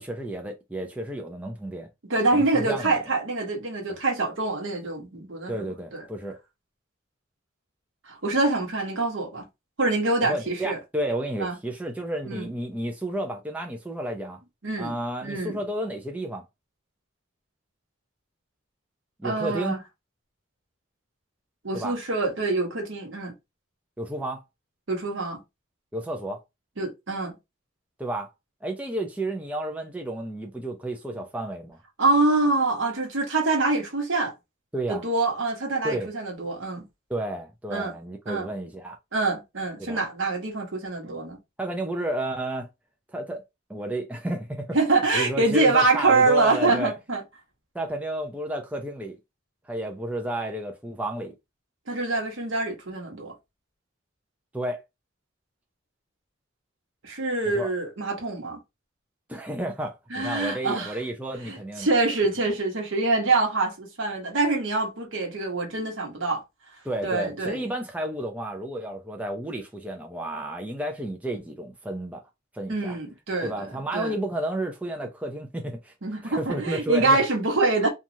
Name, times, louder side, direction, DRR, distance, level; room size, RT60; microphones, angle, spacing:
voice 1, 0.0-1.9 2.3-3.0 5.5-6.4 10.2-14.4 14.8-16.4 19.2-19.8 21.7-22.0 24.0-24.4 25.9-26.4 28.0-28.3 28.6-31.8 34.7-35.0 35.8-36.1 37.1-39.0 39.8-40.0 41.6-42.7 43.1-43.4 43.7-44.8 45.1-46.9 47.7-49.2 49.7-51.3 54.5-54.8 57.5-57.7 59.3-61.9 66.8-72.2 72.5-73.0 73.4-75.9 76.2-77.2, right 1 dB, 5° right, 0.4 m, -31 dB
voice 2, 2.0-6.0 8.1-9.5 9.8-10.8 11.4-11.5 12.3-12.5 14.6-14.9 15.2-15.5 19.2-19.8 21.6-23.3 24.9-25.4 26.8-27.4 32.0-34.3 34.9-36.9 37.7-37.9 38.3-38.5 39.1-41.4 44.7-47.2 51.9-53.3 57.0-58.6 60.1-61.0 61.5-66.4 67.0-67.6 72.7-73.7 73.9-74.1 76.0-77.9, right 3 dB, 70° right, 1.0 m, -25 dB
3.0 x 2.3 x 2.6 m
head